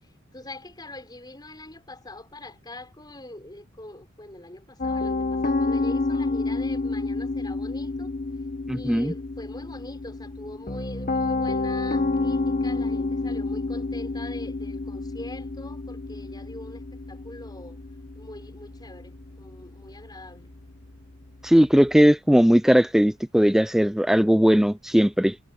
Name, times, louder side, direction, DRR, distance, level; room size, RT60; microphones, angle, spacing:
voice 1, 0.3-8.1 8.7-17.8 18.2-20.5, left 1 dB, 20° left, 5.2 m, -43 dB
Piano, 4.8-21.9, left 3 dB, 40° left, 1.1 m, -30 dB
voice 2, 8.7-9.1 21.4-25.4, equal, ahead, 0.3 m, -18 dB
head